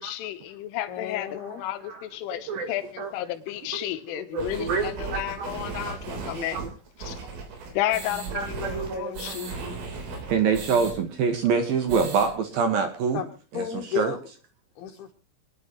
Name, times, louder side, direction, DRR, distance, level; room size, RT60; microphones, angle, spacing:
voice 1, 0.0-6.6 7.0-7.2 7.7-9.5, left 13 dB, 85° left, 3.5 m, -32 dB
voice 2, 0.9-1.6 10.0-10.1 13.1-14.2 14.8-15.1, left 8 dB, 70° left, 2.6 m, -33 dB
voice 3, 4.3-5.5 5.7-6.0 6.4-6.7 8.3-9.8 10.3-13.2 13.5-14.2, right 5 dB, 65° right, 2.6 m, -26 dB
sound 1, 4.4-10.9 11.3-11.4 11.7-12.3, right 4 dB, 80° right, 6.1 m, -36 dB
26.5 x 10.5 x 3.0 m
omnidirectional pair, 5.6 m